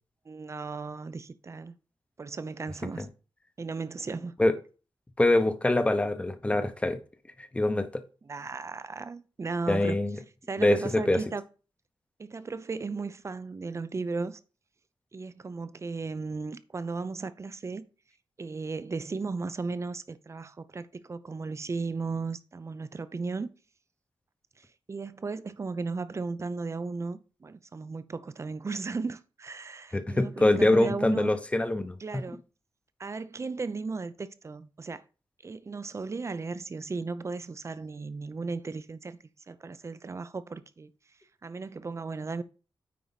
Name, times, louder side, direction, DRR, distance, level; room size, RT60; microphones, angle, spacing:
voice 1, 0.3-1.7 2.2-3.1 3.6-4.3 8.2-10.0 10.5-11.4 12.2-14.4 15.1-17.8 18.4-23.5 24.6-31.3 32.0-32.4 33.0-35.0 35.4-39.2 39.5-40.9 41.4-42.4, right 4 dB, 35° right, 0.6 m, -36 dB
voice 2, 5.2-7.0 7.4-8.0 9.7-10.2 10.6-11.2 29.9-32.0, left 1 dB, 15° left, 0.9 m, -24 dB
9.4 x 4.6 x 4.0 m
wide cardioid pair, 135°, 9 cm